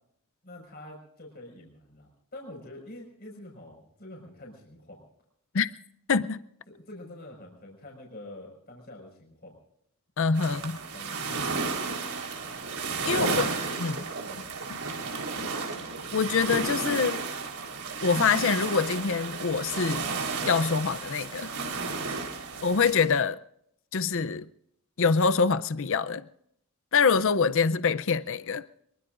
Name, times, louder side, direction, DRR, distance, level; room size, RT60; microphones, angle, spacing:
voice 1, 0.4-5.1 6.7-9.6 10.4-11.7 13.2-13.8 14.1-14.5 15.4-16.1, left 1 dB, 45° left, 5.5 m, -46 dB
voice 2, 6.1-6.4 10.2-10.8 13.0-13.5 13.8-14.0 16.1-17.2 18.0-20.1 20.4-21.5 22.6-23.4 23.9-24.5 25.0-26.2 26.9-28.6, left 5 dB, 60° left, 0.6 m, -25 dB
sound 1, 10.3-23.1, right 4 dB, 80° right, 4.1 m, -33 dB
25.0 x 23.0 x 2.6 m
head